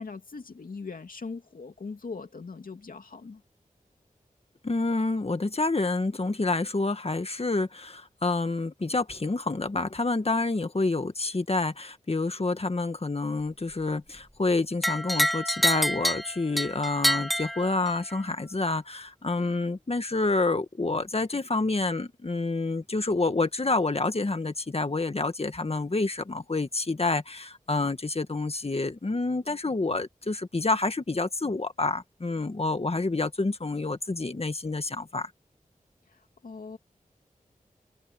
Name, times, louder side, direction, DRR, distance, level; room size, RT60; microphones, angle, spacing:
voice 1, 0.0-3.4 36.4-36.8, left 4 dB, 85° left, 2.7 m, -40 dB
voice 2, 4.6-35.3, left 3 dB, 45° left, 1.8 m, -28 dB
sound 1, 14.8-18.2, equal, ahead, 1.7 m, -27 dB
wide cardioid pair, 55°, 14 cm